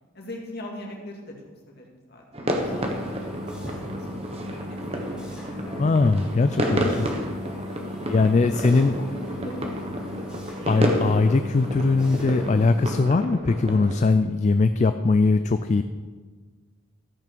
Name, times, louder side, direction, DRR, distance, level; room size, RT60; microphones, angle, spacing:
voice 1, 0.1-1.3 1.7-3.2 3.6-6.2 8.0-10.2, left 1 dB, 50° left, 0 dB, 2.3 m, -42 dB
sound 1, 2.3-14.0, equal, 30° right, 1.2 m, -30 dB
sound 2, 2.5-13.0, equal, 5° right, 3.0 m, -38 dB
voice 2, 5.8-7.1 8.1-9.0 10.7-15.8, left 3 dB, 35° left, 10 dB, 0.3 m, -21 dB
14.0 x 6.0 x 6.8 m, 1.5 s
head